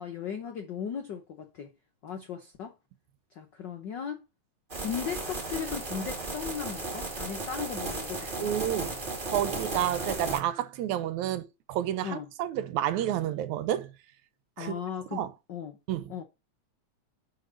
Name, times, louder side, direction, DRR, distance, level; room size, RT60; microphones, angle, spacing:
voice 1, 0.0-1.7 2.0-2.7 3.3-4.3 4.8-8.6 12.0-12.3 14.6-15.2 15.5-15.8 16.1-16.2, left 7 dB, 75° left, 1.0 m, -37 dB
sound 1, 4.7-10.4, right 2 dB, 20° right, 1.6 m, -35 dB
voice 2, 8.4-9.0 9.3-13.9 14.6-14.8 15.1-15.3 15.9-16.1, right 11 dB, 80° right, 2.2 m, -30 dB
5.6 x 5.2 x 6.3 m
omnidirectional pair, 3.4 m